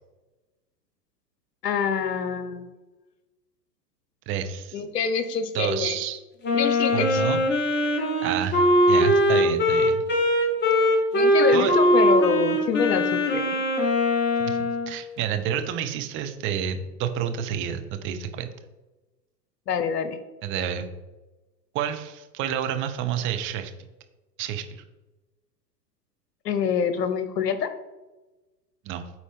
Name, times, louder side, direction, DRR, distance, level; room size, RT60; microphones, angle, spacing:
voice 1, 1.6-2.7 4.7-6.0 6.5-7.2 11.1-13.4 19.7-20.2 26.4-27.7, left 7 dB, 70° left, 10 dB, 1.0 m, -26 dB
voice 2, 4.3-4.8 5.5-6.2 6.9-7.4 8.2-8.6 8.9-10.0 11.5-11.8 14.4-18.5 20.4-20.9 21.7-23.7 24.4-24.8 28.8-29.0, right 9 dB, 25° right, 8 dB, 0.6 m, -29 dB
Wind instrument woodwind instrument, 6.4-14.9, left 1 dB, 20° left, 1.5 m, -21 dB
8.9 x 4.2 x 3.7 m, 1.1 s
hypercardioid pair, 105°, 50 cm